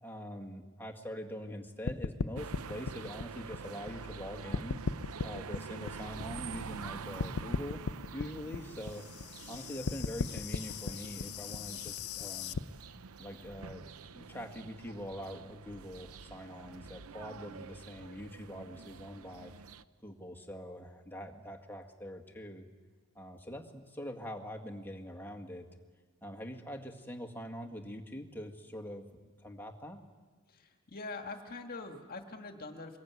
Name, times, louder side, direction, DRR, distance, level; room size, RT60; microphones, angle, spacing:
voice 1, 0.0-4.8 5.2-7.8 8.1-9.1 9.5-12.6 13.2-13.8 14.1-19.5 20.0-22.6 23.2-25.7 26.2-30.0, equal, 10° left, 2 dB, 2.0 m, -44 dB
sound 1, 1.9-4.2 4.5-6.9 7.2-12.6, left 5 dB, 85° left, 0.7 m, -37 dB
sound 2, 2.4-19.8, right 5 dB, 80° right, 0.7 m, -47 dB
voice 2, 30.5-33.0, left 3 dB, 45° left, 5 dB, 1.9 m, -44 dB
25.0 x 21.5 x 9.5 m, 1.4 s
head